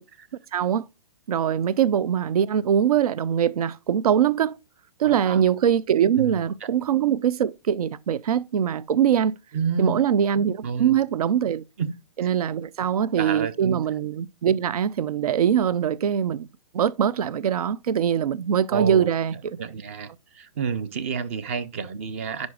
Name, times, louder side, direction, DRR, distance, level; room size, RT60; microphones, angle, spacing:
voice 1, 0.5-0.8 1.3-4.6 5.0-9.4 9.8-11.6 12.2-16.5 16.7-19.6, right 9 dB, 75° right, 0.5 m, -22 dB
voice 2, 5.0-5.4 6.2-6.4 9.5-10.0 10.6-10.9 11.8-11.9 12.2-12.3 13.2-13.8 18.7-19.1 19.6-20.1 20.3-22.5, right 6 dB, 20° right, 0.4 m, -29 dB
9.6 x 5.2 x 2.3 m
hypercardioid pair, 165°, 19 cm